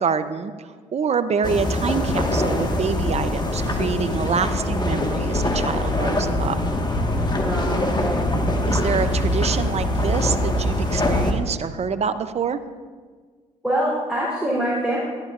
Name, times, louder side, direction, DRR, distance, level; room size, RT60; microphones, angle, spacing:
voice 1, 0.0-6.6 8.7-12.6, right 6 dB, 40° right, 11 dB, 0.6 m, -26 dB
sound 1, 1.4-11.3, left 1 dB, 25° left, 1.5 m, -23 dB
voice 2, 7.3-8.2 13.6-15.0, right 1 dB, 5° right, -7 dB, 3.3 m, -24 dB
12.0 x 11.5 x 2.5 m, 1.5 s
hypercardioid pair, 50°, 16 cm